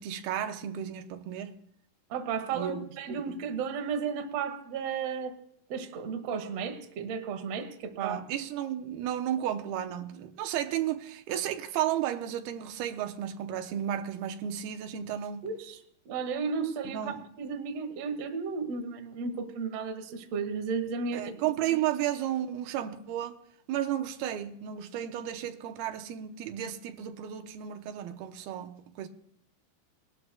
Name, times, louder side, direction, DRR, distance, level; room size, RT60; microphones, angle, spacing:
voice 1, 0.0-1.5 2.5-3.4 8.0-15.5 16.8-17.3 21.1-23.4 23.7-29.1, right 11 dB, 85° right, 2.7 m, -33 dB
voice 2, 2.1-5.3 5.7-8.2 15.4-15.8 16.1-17.0 17.4-21.3, right 5 dB, 60° right, 1.9 m, -34 dB
21.0 x 12.5 x 2.2 m
omnidirectional pair, 4.3 m